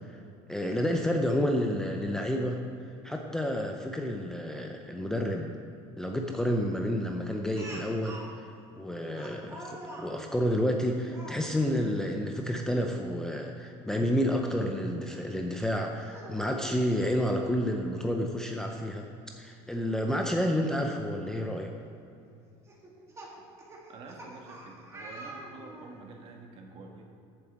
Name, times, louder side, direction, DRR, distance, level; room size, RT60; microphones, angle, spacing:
voice 1, 0.5-2.6 3.0-5.5 6.0-8.5 8.8-19.0 19.4-21.7, equal, 5° left, 1 dB, 0.6 m, -30 dB
Speech, 7.6-8.3 9.2-10.1 11.1-11.4 12.6-12.9 13.3-13.4 15.1-15.2 16.0-16.9 18.2-18.3 18.6-18.7 20.6-20.7 21.3-21.6 22.7-26.0, right 1 dB, 20° right, 1.6 m, -45 dB
voice 2, 23.9-27.0, right 3 dB, 45° right, 2 dB, 1.6 m, -47 dB
7.8 x 7.6 x 7.3 m, 2.6 s
cardioid pair, 150°, 14 cm